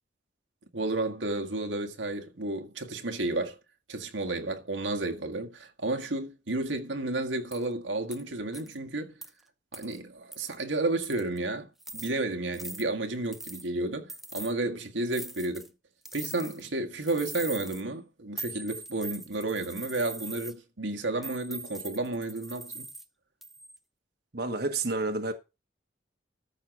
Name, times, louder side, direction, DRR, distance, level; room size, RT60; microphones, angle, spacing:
voice 1, 0.7-3.6 3.9-9.2 9.7-11.7 11.9-15.7 16.1-22.9, right 2 dB, 90° right, 1.7 m, -32 dB
sound 1, 7.5-7.6 8.1-8.2 8.5-8.8 9.2-9.3 9.7-10.0 10.3-10.6 11.0-11.4 11.8-12.1 12.5-12.8 13.3-13.7 14.1-14.5 15.1-15.7 16.0-16.7 17.0-17.8 18.4-20.5 21.2-23.0 23.4-23.8, right 2 dB, ahead, 0.7 m, -42 dB
voice 2, 24.3-25.3, right 3 dB, 55° right, 1.2 m, -29 dB
13.5 x 5.5 x 6.0 m
head